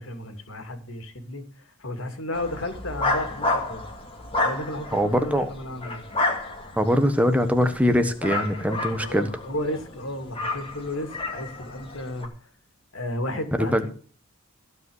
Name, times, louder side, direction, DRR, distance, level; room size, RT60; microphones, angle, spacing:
voice 1, 0.0-3.9 4.4-6.0 8.9-12.5 12.9-13.9, left 1 dB, 65° left, 6 dB, 2.7 m, -33 dB
sound 1, 2.3-12.3, left 2 dB, 25° left, 2.3 m, -31 dB
voice 2, 4.9-5.5 6.8-9.3 13.6-13.9, equal, 5° right, 8 dB, 1.3 m, -22 dB
15.5 x 5.4 x 8.0 m, 0.41 s
head